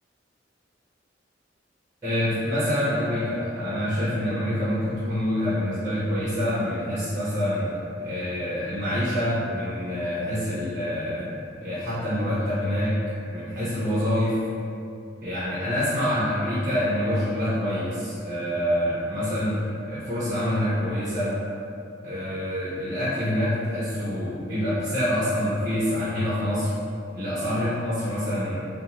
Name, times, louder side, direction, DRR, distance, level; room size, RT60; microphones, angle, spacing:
voice 1, 2.0-7.7 8.0-11.3 11.6-13.0 13.3-14.4 15.2-19.6 19.9-21.3 22.0-26.7 27.1-28.6, equal, 20° right, -12 dB, 0.7 m, -26 dB
2.6 x 2.3 x 2.9 m, 2.6 s
head